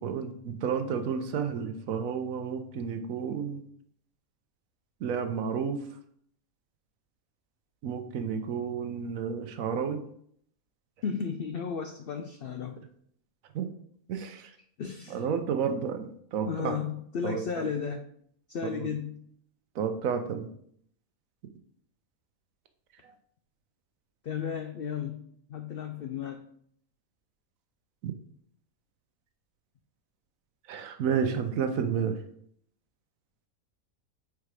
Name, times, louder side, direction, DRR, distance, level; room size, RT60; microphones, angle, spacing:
voice 1, 0.0-3.6 5.0-5.8 7.8-10.0 13.5-13.7 14.1-14.5 15.1-16.8 17.2-17.4 18.7-18.9 19.8-20.5 28.0-28.1 30.7-32.2, right 7 dB, 70° right, 8 dB, 1.0 m, -31 dB
voice 2, 11.0-12.8 14.8-15.3 16.4-18.1 18.5-19.3 24.2-26.5, left 6 dB, 85° left, 5 dB, 0.5 m, -34 dB
4.8 x 4.3 x 4.8 m, 0.67 s
omnidirectional pair, 1.6 m